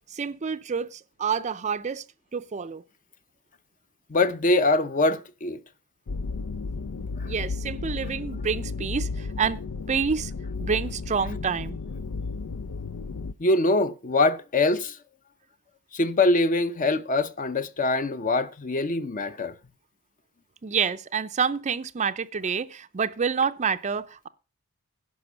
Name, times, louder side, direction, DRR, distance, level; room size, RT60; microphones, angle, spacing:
voice 1, 0.1-2.0 2.3-2.8 7.3-9.6 9.9-10.3 10.6-11.8 20.6-24.3, right 6 dB, 30° right, 0.4 m, -28 dB
voice 2, 4.1-5.6 7.2-7.3 13.4-15.0 15.9-19.5, left 2 dB, 35° left, 0.7 m, -23 dB
sound 1, 6.1-13.3, left 4 dB, 85° left, 0.5 m, -33 dB
11.0 x 5.1 x 6.8 m
head